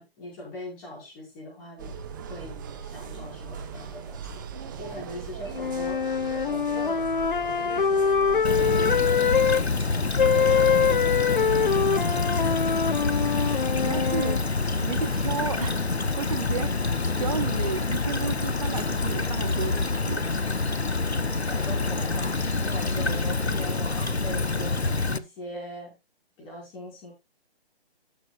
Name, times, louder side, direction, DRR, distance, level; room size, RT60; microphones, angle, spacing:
voice 1, 0.0-2.0 2.3-4.5 4.8-6.0 6.3-7.0 7.4-10.0 10.3-11.2 11.6-12.8 21.5-24.8 25.1-25.9 26.4-27.1, equal, 20° left, 5.1 m, -41 dB
sound 1, 1.8-9.1, right 6 dB, 20° right, 1.1 m, -39 dB
sound 2, 5.5-9.6 10.2-14.4, left 6 dB, 55° left, 0.6 m, -24 dB
Stream / Trickle dribble, 8.4-25.2, left 3 dB, 85° left, 0.9 m, -27 dB
voice 2, 13.8-14.4 14.8-15.8 16.2-16.9 17.2-20.2 23.0-23.2, right 6 dB, 35° right, 0.7 m, -33 dB
18.5 x 6.4 x 2.4 m
figure-of-eight pair, 145°, 31 cm